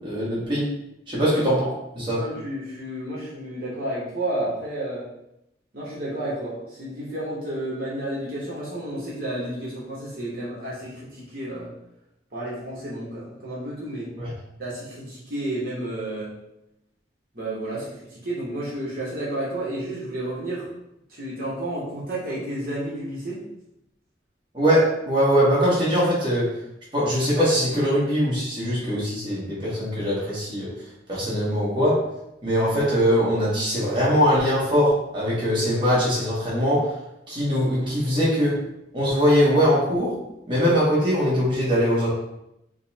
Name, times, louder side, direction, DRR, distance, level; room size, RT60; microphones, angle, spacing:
voice 1, 0.0-0.7 1.1-1.7 1.9-2.2 14.2-14.3 24.5-26.5 26.9-30.7 31.1-32.0 32.4-36.9 37.3-38.6 38.9-40.2 40.5-42.1, equal, 25° right, -8 dB, 1.1 m, -21 dB
voice 2, 1.1-1.4 2.1-5.1 5.7-11.7 12.3-14.1 14.6-16.3 17.3-20.7 21.1-23.4, right 1 dB, 50° right, -7 dB, 1.0 m, -31 dB
5.0 x 2.1 x 2.8 m, 0.85 s
head